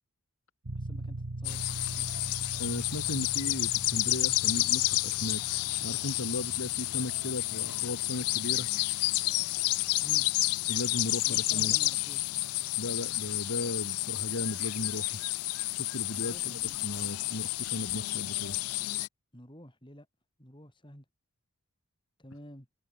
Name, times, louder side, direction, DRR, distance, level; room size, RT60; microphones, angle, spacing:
sound 1, 0.6-15.1, right 2 dB, 70° right, 1.4 m, -45 dB
voice 1, 0.8-2.1 10.0-10.3 11.2-12.4 16.1-16.8 19.3-20.1 20.4-21.0 22.2-22.7, equal, 20° left, 6.5 m, -50 dB
sound 2, 1.4-19.1, left 20 dB, 85° left, 0.4 m, -30 dB
voice 2, 2.6-8.7 10.7-11.7 12.8-15.2 15.7-18.6, left 1 dB, 65° left, 2.7 m, -36 dB
head